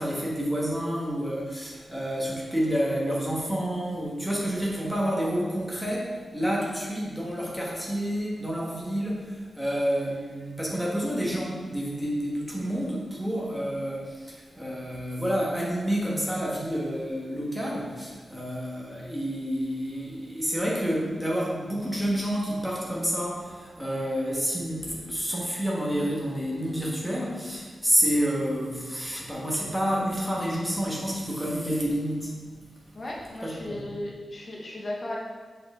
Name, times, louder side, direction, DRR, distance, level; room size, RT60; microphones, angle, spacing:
voice 1, 0.0-32.6 33.4-33.9, equal, ahead, -4 dB, 1.4 m, -29 dB
voice 2, 32.9-35.2, left 1 dB, 40° left, -3 dB, 1.0 m, -36 dB
5.8 x 5.4 x 3.7 m, 1.4 s
wide cardioid pair, 145°, 0 cm